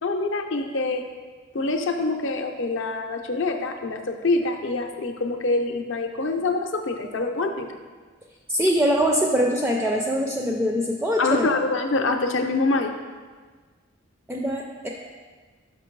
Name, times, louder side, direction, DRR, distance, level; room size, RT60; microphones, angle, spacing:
voice 1, 0.0-1.0 1.5-7.7 11.2-12.9, left 3 dB, 60° left, 4 dB, 0.6 m, -25 dB
voice 2, 8.5-11.5 14.3-14.9, equal, 10° right, 0 dB, 0.3 m, -23 dB
6.0 x 5.7 x 4.6 m, 1.5 s
head